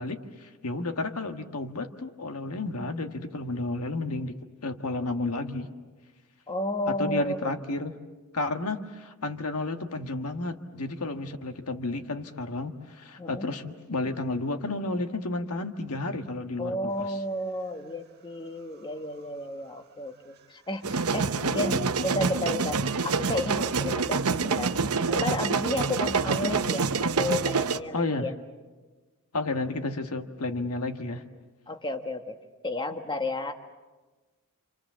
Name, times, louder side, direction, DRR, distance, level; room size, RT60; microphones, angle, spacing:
voice 1, 0.0-4.3 4.6-5.7 6.9-7.9 8.3-17.2 21.4-21.9 27.9-28.3 29.3-31.2, left 2 dB, 80° left, 7 dB, 1.5 m, -32 dB
voice 2, 6.5-7.5 13.2-13.5 16.6-24.7 25.1-28.3 31.7-32.3 32.6-33.5, left 1 dB, 20° left, 6 dB, 1.3 m, -32 dB
Dog / Siren, 17.8-17.9 18.3-19.8 20.0-22.1, right 3 dB, 50° right, 1.5 m, -41 dB
sound 1, 20.8-27.8, right 4 dB, 75° right, 0.9 m, -27 dB
29.0 x 26.5 x 7.4 m, 1.3 s
head